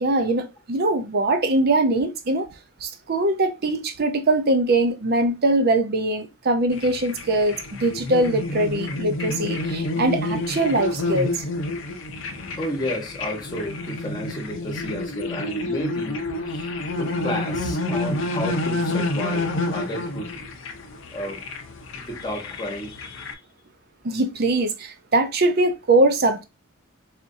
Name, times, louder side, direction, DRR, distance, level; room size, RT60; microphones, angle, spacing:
voice 1, 0.0-2.5 2.8-11.4 24.0-26.4, right 2 dB, 50° right, 0.6 m, -22 dB
sound 1, 6.7-23.3, left 2 dB, 65° left, 0.5 m, -29 dB
voice 2, 12.5-20.4 21.1-21.4 21.9-23.4, equal, 20° left, 1.0 m, -32 dB
4.2 x 2.5 x 2.6 m
head